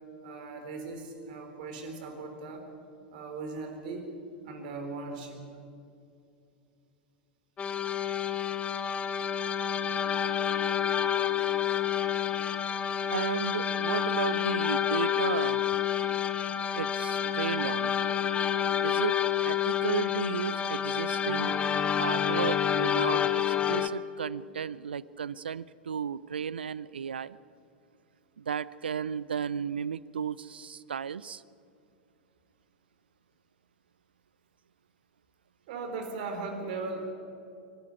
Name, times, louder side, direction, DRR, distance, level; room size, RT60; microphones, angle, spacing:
voice 1, 0.2-2.6 3.1-4.1 4.5-5.4 35.7-37.1, right 3 dB, 55° right, 5 dB, 3.8 m, -38 dB
sound 1, 7.6-23.9, left 9 dB, 20° left, 0.8 m, -28 dB
voice 2, 13.1-15.7 16.7-17.9 18.8-19.2 19.4-21.6 22.0-27.4 28.4-31.4, right 7 dB, 75° right, 20 dB, 0.5 m, -34 dB
24.0 x 12.0 x 9.5 m, 2.5 s
figure-of-eight pair, 90°, 6 cm